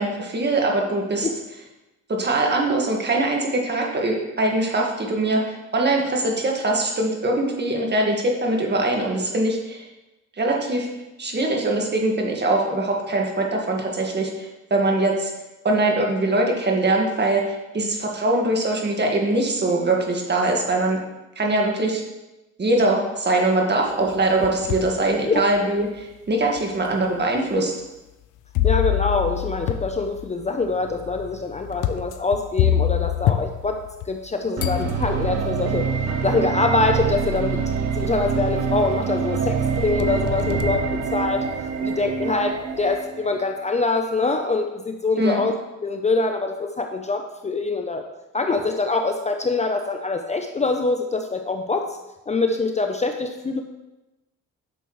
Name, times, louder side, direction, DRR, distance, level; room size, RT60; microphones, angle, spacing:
voice 1, 0.0-1.3 2.1-9.8 10.4-10.9 11.2-15.3 15.6-21.0 21.3-22.0 22.6-27.7 45.2-45.4, right 2 dB, 35° right, 0 dB, 1.8 m, -22 dB
sound 1, 24.1-25.0 25.6-25.7 26.6-26.7 28.5-34.3 34.6-35.6 36.8-36.9 37.4-37.8 38.2-39.0 39.3-41.7, left 11 dB, 85° left, 0.5 m, -26 dB
voice 2, 28.6-33.8 34.1-35.9 36.2-37.6 37.9-41.4 41.8-45.5 45.8-48.0 48.3-52.0 52.3-53.6, left 3 dB, 25° left, 5 dB, 0.6 m, -24 dB
sound 2, 34.6-43.6, right 6 dB, 60° right, 0.8 m, -26 dB
9.3 x 6.8 x 3.2 m, 1.0 s
cardioid pair, 90°, 30 cm